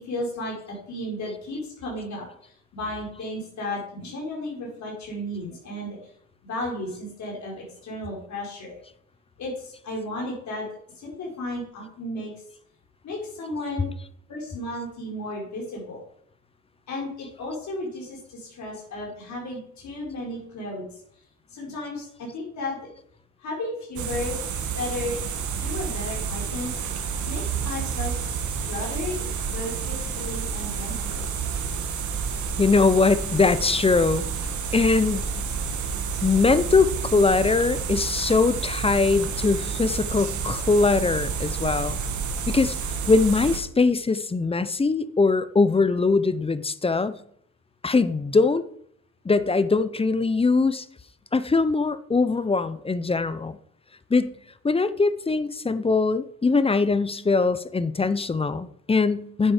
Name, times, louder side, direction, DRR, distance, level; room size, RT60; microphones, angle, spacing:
voice 1, 0.0-6.0 6.4-8.8 9.4-10.7 11.0-12.3 13.0-13.9 14.3-16.0 16.9-20.9 21.5-22.8 23.4-24.4 24.8-25.2 25.6-26.8 27.2-28.4 28.6-29.2 29.5-31.3, left 1 dB, 65° left, -2 dB, 4.3 m, -34 dB
sound 1, 24.0-43.6, right 6 dB, 75° right, 1.7 m, -30 dB
voice 2, 32.6-34.3 34.7-35.3 36.2-42.0 42.5-42.8 43.1-47.2 47.8-48.6 49.2-50.8 51.3-53.6 54.1-54.3 54.6-59.5, left 4 dB, 20° left, 14 dB, 0.7 m, -22 dB
10.0 x 7.7 x 5.0 m, 0.65 s
cardioid pair, 90°, 30 cm